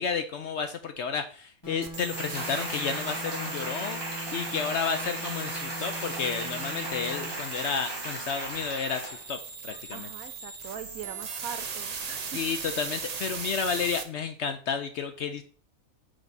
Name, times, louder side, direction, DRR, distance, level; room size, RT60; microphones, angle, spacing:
voice 1, 0.0-9.4 9.6-10.1 12.3-15.4, left 6 dB, 65° left, 8 dB, 0.7 m, -31 dB
sound 1, 1.6-7.4, left 1 dB, 15° left, 2.9 m, -41 dB
sound 2, 1.8-14.0, right 5 dB, 45° right, 0.5 m, -38 dB
Applause, 2.1-9.3 9.7-9.8, right 1 dB, 15° right, 1.5 m, -37 dB
voice 2, 9.9-12.4, right 8 dB, 75° right, 10 dB, 1.1 m, -41 dB
6.4 x 4.6 x 4.0 m, 0.42 s
omnidirectional pair, 1.5 m